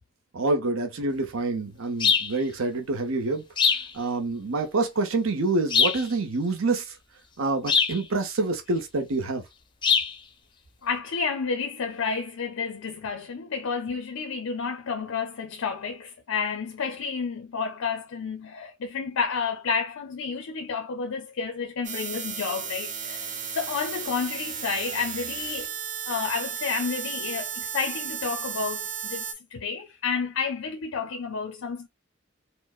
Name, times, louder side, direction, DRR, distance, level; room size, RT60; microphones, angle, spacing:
voice 1, 0.3-3.4 3.9-7.0 7.4-9.4, right 3 dB, 75° right, 0.7 m, -27 dB
sound 1, 2.0-2.3 3.6-3.9 5.7-6.1 7.7-8.0 9.8-10.1, left 6 dB, 25° left, 0.5 m, -22 dB
voice 2, 10.8-25.7 26.1-31.9, left 5 dB, 90° left, 0.5 m, -30 dB
sound 2, 21.8-29.3, right 7 dB, 40° right, 0.7 m, -34 dB
4.3 x 2.0 x 2.4 m
head